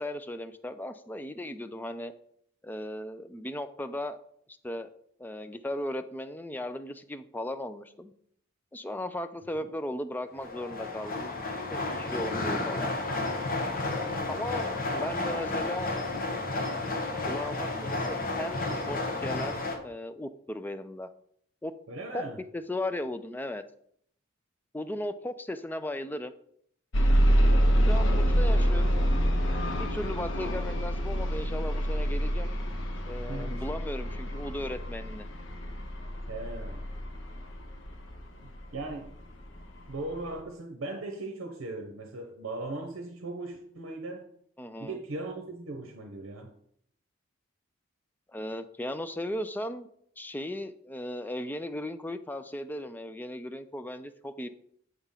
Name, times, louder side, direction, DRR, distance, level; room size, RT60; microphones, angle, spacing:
voice 1, 0.0-2.1 2.6-4.2 4.6-4.9 5.2-8.1 8.7-11.3 11.7-13.0 13.8-15.9 17.3-21.1 21.6-21.7 22.1-22.2 22.5-23.6 24.7-26.3 27.9-29.1 29.7-32.5 33.1-35.3 44.6-45.0 48.3-49.9 50.2-54.5, left 1 dB, 10° left, 9 dB, 0.3 m, -36 dB
sound 1, 10.4-19.8, left 2 dB, 40° left, 1.1 m, -32 dB
voice 2, 14.0-14.3 21.9-22.4 33.2-33.9 36.3-36.8 38.4-39.2 39.9-44.3 44.8-46.5, right 2 dB, 70° right, 3 dB, 0.8 m, -38 dB
sound 2, 26.9-38.8 39.6-39.7 40.1-40.2, equal, 60° left, 0.9 m, -26 dB
8.0 x 3.7 x 5.6 m, 0.68 s
head